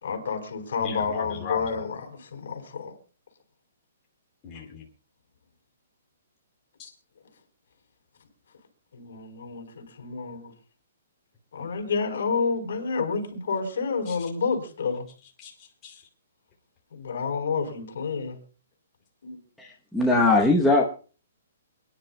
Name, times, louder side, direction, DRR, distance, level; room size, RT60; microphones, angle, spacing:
voice 1, 0.0-2.9 8.9-10.5 11.5-15.1 16.9-18.4 19.2-19.4, left 5 dB, 60° left, 4.1 m, -29 dB
voice 2, 0.8-1.7 4.4-4.9 6.8-6.9 14.1-14.3 15.4-16.0, left 7 dB, 15° left, 2.5 m, -38 dB
voice 3, 19.6-20.8, left 2 dB, ahead, 0.9 m, -20 dB
28.5 x 10.5 x 2.2 m
hypercardioid pair, 180°, 0 cm